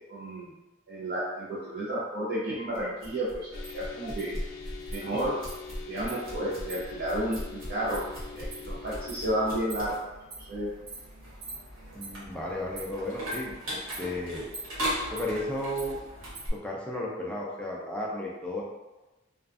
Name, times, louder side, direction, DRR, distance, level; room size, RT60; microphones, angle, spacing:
voice 1, 0.1-0.5 0.9-4.3 4.9-5.3 5.9-8.0 8.3-9.9 10.4-10.7, right 1 dB, 55° right, -9 dB, 0.6 m, -32 dB
sound 1, 2.7-16.5, equal, 90° right, 0.9 m, -38 dB
sound 2, 3.5-9.7, left 5 dB, 80° left, 0.4 m, -44 dB
voice 2, 11.9-14.5 15.1-16.0 16.5-18.6, left 1 dB, 5° left, -4 dB, 0.4 m, -34 dB
2.5 x 2.3 x 2.4 m, 1.1 s
head